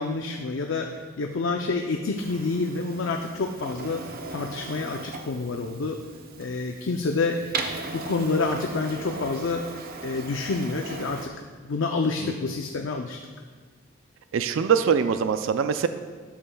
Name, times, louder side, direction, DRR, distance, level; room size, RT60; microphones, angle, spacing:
voice 1, 0.0-4.0 4.3-6.0 6.4-7.4 7.9-9.6 10.0-11.3 11.6-13.2, left 3 dB, 70° left, 3 dB, 0.5 m, -28 dB
Printer, 2.2-11.3, right 3 dB, 50° right, 0.7 m, -38 dB
voice 2, 14.3-15.9, right 7 dB, 80° right, 10 dB, 0.4 m, -23 dB
12.5 x 8.6 x 2.3 m, 1.5 s
head